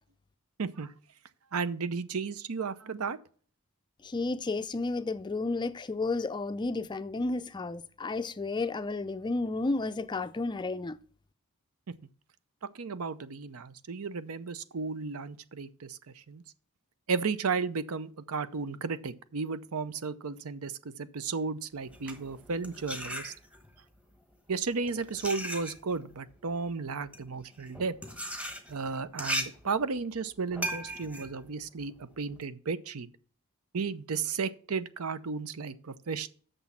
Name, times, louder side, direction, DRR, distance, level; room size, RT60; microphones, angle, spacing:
voice 1, 0.6-0.9 1.5-3.2 12.7-16.0 16.3-16.4 17.1-23.3 24.5-27.9 28.7-33.1 33.7-36.3, right 4 dB, 75° right, 0.7 m, -34 dB
voice 2, 4.0-11.0, left 3 dB, 20° left, 0.4 m, -32 dB
sound 1, 21.8-23.8 24.5-32.4, right 1 dB, 5° right, 1.1 m, -38 dB
6.8 x 6.3 x 7.2 m
head